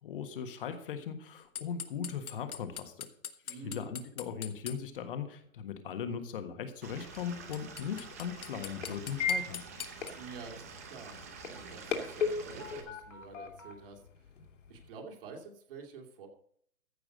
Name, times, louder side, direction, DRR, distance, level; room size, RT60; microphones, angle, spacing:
voice 1, 0.0-3.1 3.5-9.6, left 7 dB, 40° left, 8 dB, 1.5 m, -39 dB
sound 1, 1.6-4.8 7.1-7.2 7.5-10.1, left 8 dB, 85° left, 1.5 m, -41 dB
voice 2, 3.4-4.0 10.2-11.2 11.5-14.3 14.7-16.3, right 4 dB, 40° right, 2 dB, 2.7 m, -48 dB
Stream / Liquid, 6.8-12.8, right 5 dB, 10° right, 0.6 m, -48 dB
sound 2, 7.0-14.9, left 6 dB, 60° left, 2.7 m, -39 dB
15.0 x 5.9 x 6.6 m, 0.64 s
hypercardioid pair, 160°, 42 cm